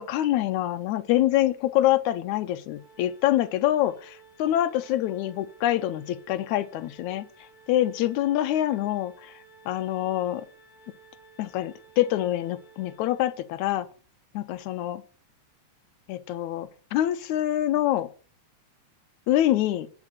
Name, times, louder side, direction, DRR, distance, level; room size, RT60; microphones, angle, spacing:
voice 1, 0.0-7.3 7.7-9.3 9.7-10.5 11.4-13.9 14.3-15.0 16.1-18.1 19.3-19.9, left 13 dB, 85° left, 12 dB, 2.0 m, -25 dB
Organ, 2.7-13.6, right 3 dB, 20° left, 7.3 m, -55 dB
11.0 x 5.0 x 7.7 m, 0.43 s
omnidirectional pair, 3.4 m